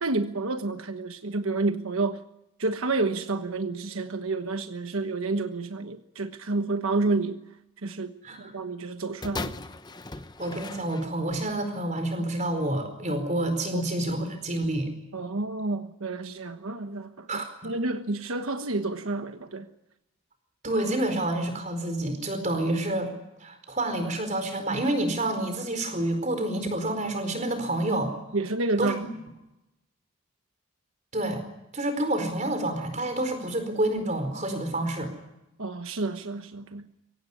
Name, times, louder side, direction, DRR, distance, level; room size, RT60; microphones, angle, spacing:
voice 1, 0.0-2.2 2.6-7.4 7.8-8.1 8.4-9.5 13.7-13.8 15.1-19.7 28.3-29.1 35.6-36.9, right 3 dB, 90° right, 1.3 m, -29 dB
sound 1, 9.2-11.5 12.3-12.4, left 2 dB, 20° left, 0.9 m, -38 dB
voice 2, 10.4-14.9 17.3-17.7 20.6-23.1 23.4-28.1 28.8-28.9 31.1-31.4 31.7-35.1, right 1 dB, 35° right, 4.6 m, -28 dB
24.0 x 17.5 x 9.9 m
head